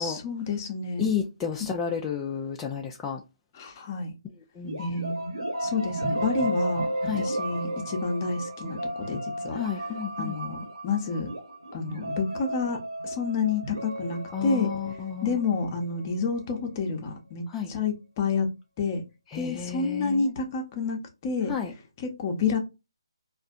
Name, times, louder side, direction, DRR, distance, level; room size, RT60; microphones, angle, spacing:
voice 1, 0.0-1.1 3.5-4.1 4.8-5.3 5.6-6.9 7.2-9.6 10.2-11.3 11.7-14.7 15.2-18.5 18.8-19.0 19.3-21.5 22.0-22.6, left 4 dB, 30° left, 0.7 m, -29 dB
voice 2, 1.0-3.2 4.6-4.8 7.1-7.3 9.5-10.4 14.3-15.4 17.5-17.7 19.3-20.4 21.5-21.7, left 8 dB, 10° left, 0.3 m, -31 dB
sound 1, 4.6-16.3, right 1 dB, 80° right, 1.3 m, -33 dB
4.2 x 2.5 x 2.5 m
figure-of-eight pair, 150°, 3 cm